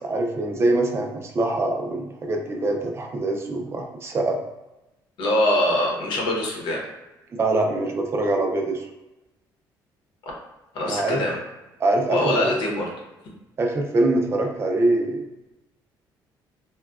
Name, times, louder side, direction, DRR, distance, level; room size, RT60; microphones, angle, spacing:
voice 1, 0.0-4.4 7.3-8.8 10.8-11.2 11.8-12.5 13.6-15.3, right 2 dB, 30° right, 2 dB, 0.5 m, -24 dB
voice 2, 5.2-6.8 10.7-11.4 12.1-12.9, left 1 dB, 70° left, -1 dB, 0.9 m, -23 dB
3.6 x 2.2 x 2.3 m, 0.99 s
cardioid pair, 115°, 8 cm